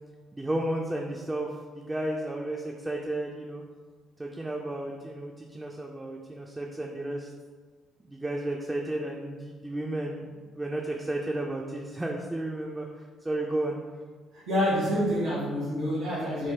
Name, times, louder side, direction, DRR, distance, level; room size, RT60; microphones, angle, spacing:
voice 1, 0.3-3.6 4.2-7.3 8.0-12.9 13.2-13.8 16.0-16.1, right 1 dB, 15° right, -1 dB, 0.3 m, -33 dB
voice 2, 14.3-16.5, equal, 75° right, -9 dB, 1.0 m, -27 dB
3.6 x 2.1 x 2.8 m, 1.5 s
figure-of-eight pair, 45°, 0 cm